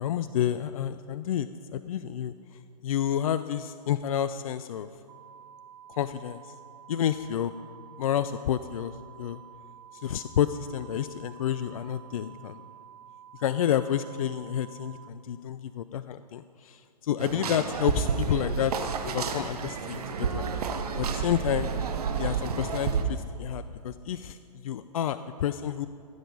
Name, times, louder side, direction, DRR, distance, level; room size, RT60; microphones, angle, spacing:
voice 1, 0.0-4.9 5.9-6.5 6.9-7.5 8.0-9.4 9.9-12.6 13.3-18.7 19.1-20.5 21.0-21.7 22.2-25.9, left 10 dB, 55° left, 13 dB, 0.4 m, -30 dB
sound 1, 5.1-15.1, right 9 dB, 45° right, 1.2 m, -50 dB
sound 2, 17.2-23.0, right 6 dB, 65° right, 1.1 m, -30 dB
15.5 x 7.9 x 5.4 m, 2.4 s
figure-of-eight pair, 120°, 21 cm